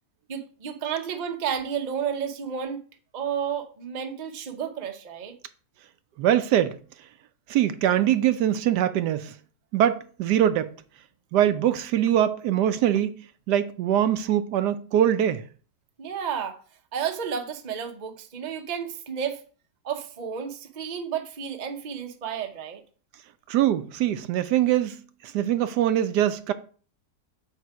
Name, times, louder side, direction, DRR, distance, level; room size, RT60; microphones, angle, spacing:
voice 1, 0.3-2.8 3.1-5.4 16.0-16.6 16.9-19.4 19.8-22.8, right 7 dB, 40° right, 0.6 m, -31 dB
voice 2, 6.2-6.8 7.5-9.3 9.7-10.7 11.3-15.4 23.5-25.0 25.2-26.5, right 11 dB, 75° right, 1.1 m, -23 dB
8.4 x 3.6 x 4.7 m
omnidirectional pair, 1.9 m